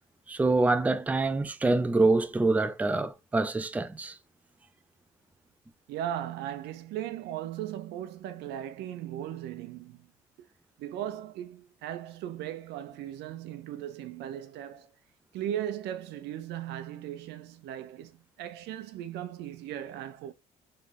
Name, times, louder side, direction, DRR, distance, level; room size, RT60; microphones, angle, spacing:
voice 1, 0.3-4.2, right 3 dB, 10° right, 0.4 m, -25 dB
voice 2, 5.9-10.1 10.8-14.9 15.3-20.3, right 11 dB, 80° right, 0.6 m, -37 dB
3.3 x 3.3 x 3.6 m
cardioid pair, 110°, 17 cm